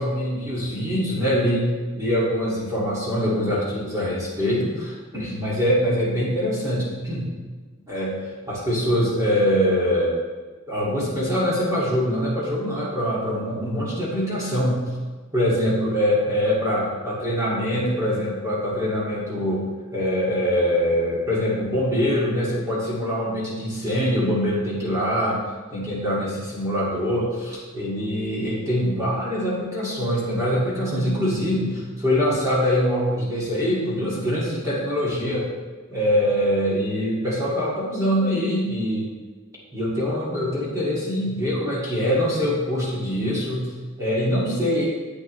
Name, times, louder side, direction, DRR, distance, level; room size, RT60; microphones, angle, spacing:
voice 1, 0.0-7.3 7.9-8.2 8.5-10.2 10.7-14.9 15.3-25.4 25.7-35.5 35.9-39.1 39.7-43.7 44.0-44.8, equal, 15° right, -7 dB, 2.2 m, -23 dB
10.0 x 8.1 x 3.2 m, 1.4 s
head